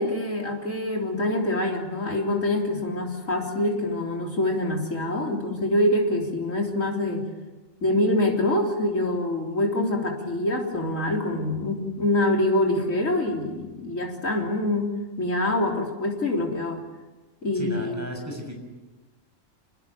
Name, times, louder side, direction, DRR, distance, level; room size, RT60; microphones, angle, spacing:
voice 1, 0.0-7.3 7.8-16.8 17.4-18.0, left 1 dB, 85° left, 1 dB, 4.0 m, -25 dB
voice 2, 17.5-18.6, equal, 10° right, 1 dB, 6.8 m, -35 dB
28.0 x 20.0 x 9.0 m, 1.2 s
omnidirectional pair, 1.3 m